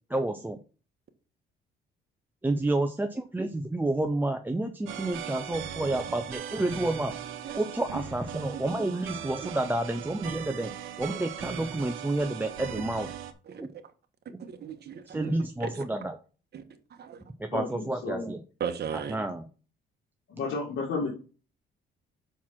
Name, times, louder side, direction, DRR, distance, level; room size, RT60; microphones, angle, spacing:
voice 1, 0.1-0.6 2.4-7.1 7.5-10.7 11.0-13.1 13.6-13.7 14.3-14.4 15.1-16.2 17.4-18.4 19.1-19.5, right 2 dB, 10° right, 6 dB, 0.6 m, -30 dB
sound 1, 4.9-13.3, right 9 dB, 85° right, 0.9 m, -39 dB
voice 2, 13.5-13.8 14.4-15.3 15.6-15.8 16.5-16.6 16.9-17.2 18.6-19.2, right 8 dB, 55° right, 7 dB, 1.3 m, -37 dB
voice 3, 17.5-18.3 20.3-21.1, left 4 dB, 75° left, -2 dB, 2.0 m, -32 dB
6.0 x 4.6 x 5.7 m, 0.36 s
cardioid pair, 90°, 20 cm